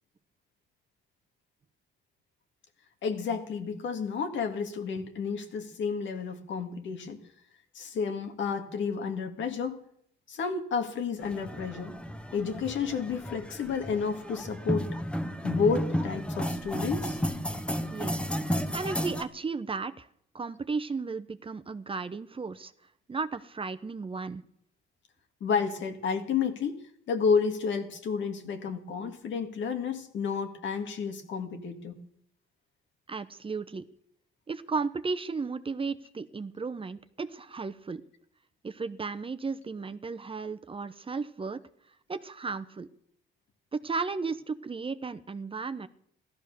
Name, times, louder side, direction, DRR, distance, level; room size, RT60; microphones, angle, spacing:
voice 1, 3.0-7.2 7.7-9.8 10.3-11.9 12.3-15.0 15.4-17.2 25.4-32.0, left 5 dB, 70° left, 6 dB, 2.1 m, -31 dB
sound 1, 11.2-19.2, equal, 5° left, 1.4 m, -33 dB
voice 2, 17.9-18.3 18.7-20.1 20.3-22.7 23.1-24.4 33.1-33.9 34.5-38.0 38.6-41.6 42.1-42.9 43.7-45.9, right 4 dB, 25° right, 11 dB, 0.8 m, -34 dB
16.0 x 13.0 x 6.7 m, 0.69 s
cardioid pair, 90°, 20 cm